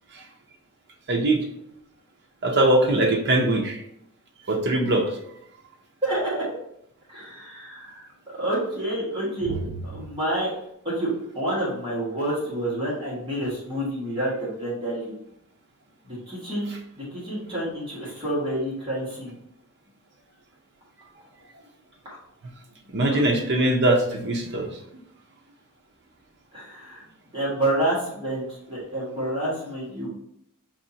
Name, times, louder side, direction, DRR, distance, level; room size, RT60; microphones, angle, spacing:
voice 1, 1.1-1.4 2.4-3.8 4.5-5.1 9.5-9.6 22.9-24.7, right 1 dB, 50° right, 1 dB, 0.7 m, -21 dB
voice 2, 6.0-6.4 7.1-9.5 9.9-10.6 10.8-15.1 16.0-16.7 16.9-19.4 23.1-23.2 26.5-27.0 27.3-30.1, right 1 dB, 25° right, -8 dB, 1.5 m, -28 dB
5.5 x 2.7 x 2.8 m, 0.76 s
head